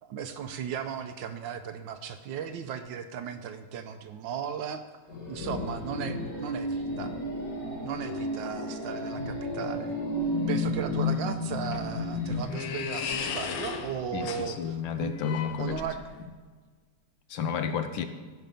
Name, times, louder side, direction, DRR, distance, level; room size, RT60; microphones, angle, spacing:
voice 1, 0.0-4.8 5.3-7.1 7.8-10.0 10.5-15.2 15.6-16.0, right 8 dB, 70° right, 9 dB, 1.3 m, -36 dB
sound 1, 5.1-12.4, left 2 dB, 55° left, 3.2 m, -32 dB
sound 2, 11.4-16.2, left 6 dB, 90° left, 1.8 m, -36 dB
voice 2, 14.1-15.8 17.3-18.1, left 7 dB, 75° left, 9 dB, 1.4 m, -31 dB
15.5 x 5.8 x 5.2 m, 1.5 s
omnidirectional pair, 2.3 m